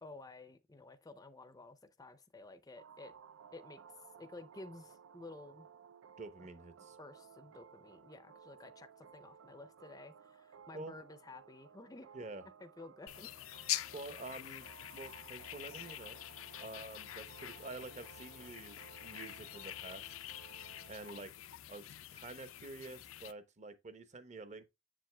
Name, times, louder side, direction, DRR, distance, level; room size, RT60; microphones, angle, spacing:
voice 1, 0.0-3.1 3.5-3.8 4.2-5.7 7.0-12.1 12.6-13.3, left 2 dB, 20° left, 0.5 m, -53 dB
sound 1, 2.8-21.2, right 7 dB, 70° right, 0.4 m, -58 dB
voice 2, 6.2-7.0 10.7-10.9 12.1-12.4 13.9-14.7 14.9-16.2 16.6-20.1 20.9-21.3 21.7-24.6, right 2 dB, 35° right, 0.8 m, -48 dB
sound 2, 13.1-23.3, left 13 dB, 70° left, 0.4 m, -45 dB
7.5 x 7.3 x 2.2 m
head